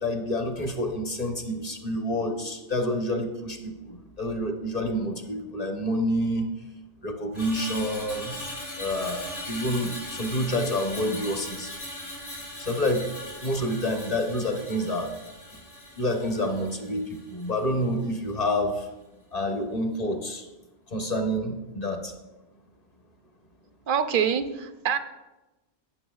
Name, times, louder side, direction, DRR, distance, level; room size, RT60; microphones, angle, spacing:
voice 1, 0.0-6.5 7.0-8.4 8.8-11.7 12.6-13.1 13.4-15.1 16.0-18.9 19.3-20.4 20.9-22.1, left 1 dB, 35° left, 4 dB, 1.0 m, -28 dB
Screech, 7.3-17.7 18.0-18.3, left 1 dB, 75° left, 2.9 m, -39 dB
voice 2, 23.9-25.0, right 8 dB, 60° right, 10 dB, 0.6 m, -25 dB
15.5 x 6.3 x 2.4 m, 1.1 s
omnidirectional pair, 1.2 m